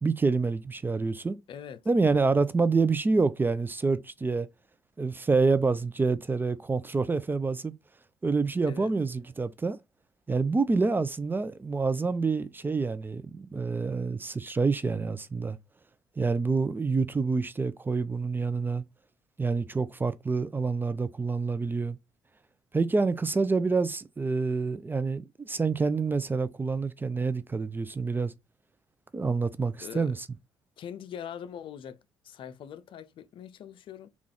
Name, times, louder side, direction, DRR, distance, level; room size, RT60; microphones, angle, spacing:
voice 1, 0.0-1.4 1.9-4.5 5.0-7.7 8.2-9.8 10.3-15.6 16.2-18.8 19.4-22.0 22.7-28.3 29.1-30.2, right 4 dB, 20° right, 0.4 m, -27 dB
voice 2, 1.5-1.8 8.7-8.9 29.8-30.1 30.8-34.1, left 9 dB, 55° left, 0.5 m, -42 dB
3.6 x 2.4 x 3.4 m
hypercardioid pair, 60°, 10 cm